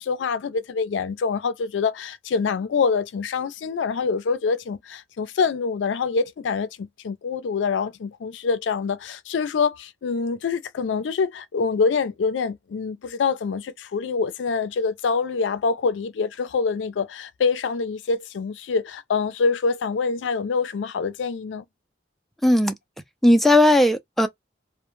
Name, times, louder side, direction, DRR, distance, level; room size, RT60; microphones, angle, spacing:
voice 1, 0.0-21.6, left 5 dB, 85° left, 0.4 m, -25 dB
voice 2, 22.4-22.7 23.2-24.3, left 1 dB, ahead, 0.3 m, -16 dB
2.1 x 2.0 x 3.0 m
head